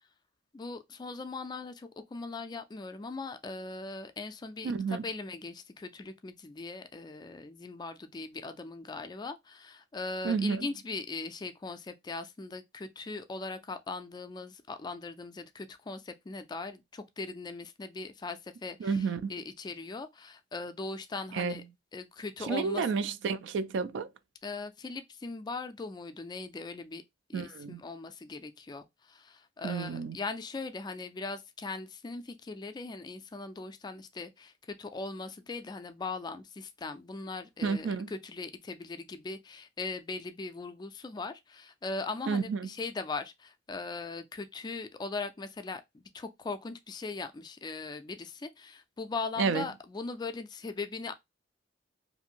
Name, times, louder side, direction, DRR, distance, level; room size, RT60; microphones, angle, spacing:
voice 1, 0.5-21.6 21.9-22.8 24.4-27.0 27.3-34.5 34.8-51.1, left 3 dB, 25° left, 0.3 m, -40 dB
voice 2, 4.6-5.0 10.2-10.7 18.8-19.3 21.3-21.6 22.4-24.1 27.3-27.8 29.6-30.2 37.6-38.1 42.3-42.7 49.4-49.7, right 5 dB, 75° right, 0.3 m, -31 dB
2.6 x 2.5 x 2.8 m
head